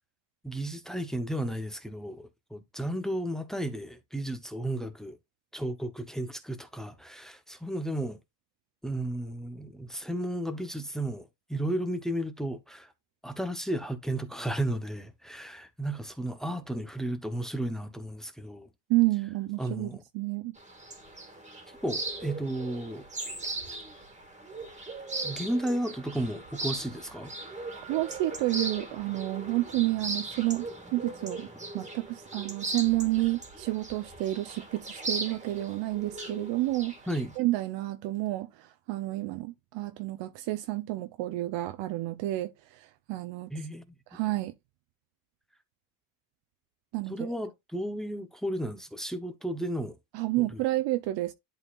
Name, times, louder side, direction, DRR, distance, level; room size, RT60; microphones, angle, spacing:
voice 1, 0.4-5.2 5.5-8.2 8.8-12.9 13.2-18.7 19.6-20.0 21.8-23.0 25.2-27.3 37.1-37.3 43.5-44.0 47.1-50.0 50.4-50.6, right 1 dB, ahead, 0.9 m, -33 dB
voice 2, 18.9-20.6 27.9-30.7 30.9-31.5 31.7-36.9 37.4-43.5 44.1-44.5 46.9-47.3 50.1-51.3, right 18 dB, 75° right, 0.8 m, -30 dB
sound 1, 20.6-37.4, right 2 dB, 15° right, 2.0 m, -39 dB
11.0 x 4.0 x 2.4 m
cardioid pair, 135°, 45 cm